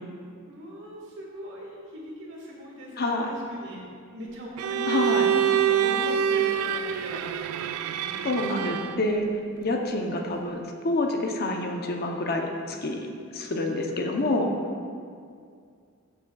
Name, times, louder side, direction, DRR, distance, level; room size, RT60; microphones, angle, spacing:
voice 1, 0.5-3.8 4.1-8.9 13.4-13.5, equal, 60° right, -3 dB, 1.7 m, -40 dB
voice 2, 3.0-3.3 4.9-5.3 8.2-9.3 9.6-13.1 13.3-14.5, left 2 dB, 45° left, 2 dB, 0.7 m, -27 dB
Bowed string instrument, 4.6-9.1, right 9 dB, 80° right, 0.3 m, -26 dB
13.0 x 5.9 x 2.3 m, 2.2 s
head